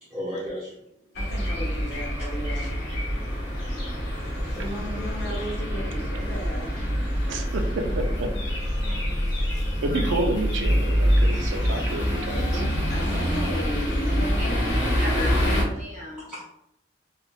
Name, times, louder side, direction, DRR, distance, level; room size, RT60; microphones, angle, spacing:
voice 1, 0.0-0.8 1.6-1.7 2.5-2.7 4.5-4.6 16.2-16.4, equal, 5° right, -10 dB, 0.6 m, -35 dB
sound 1, 1.1-15.6, equal, 85° left, 1.1 m, -25 dB
voice 2, 1.1-2.7 4.3-6.8 12.5-15.6, equal, 55° left, -1 dB, 0.8 m, -35 dB
voice 3, 7.2-8.3 9.8-12.5, right 2 dB, 90° right, 4 dB, 0.5 m, -29 dB
voice 4, 8.8-9.3 9.6-10.1 14.4-16.2, left 1 dB, 40° right, -2 dB, 0.9 m, -37 dB
3.5 x 2.4 x 2.4 m, 0.76 s
head